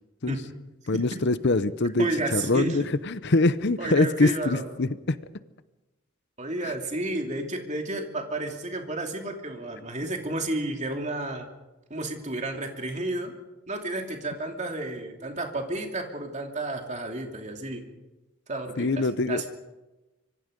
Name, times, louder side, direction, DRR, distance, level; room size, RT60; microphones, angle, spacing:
voice 1, 0.9-2.1 2.3-5.2 6.6-6.7 18.8-19.4, left 2 dB, 50° left, 14 dB, 0.8 m, -24 dB
voice 2, 2.0-2.8 3.8-4.7 6.4-11.5 11.9-13.3 13.7-17.8 18.5-19.5, right 2 dB, 35° right, 3 dB, 2.8 m, -31 dB
25.5 x 24.5 x 5.3 m, 1.1 s
head